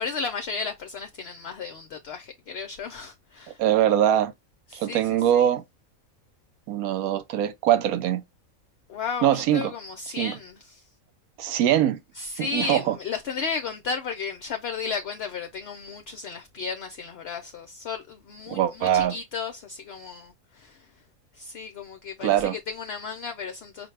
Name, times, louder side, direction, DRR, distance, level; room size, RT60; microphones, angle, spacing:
voice 1, 0.0-3.6 4.7-5.5 8.9-10.9 12.1-21.0 21.3-23.9, left 5 dB, 60° left, 0.7 m, -34 dB
voice 2, 3.6-4.3 4.7-5.6 6.7-8.2 9.2-9.7 10.2-10.3 11.4-12.0 12.4-12.9 18.5-19.1 22.2-22.5, right 11 dB, 85° right, 1.1 m, -22 dB
5.6 x 2.3 x 3.2 m
omnidirectional pair, 1.5 m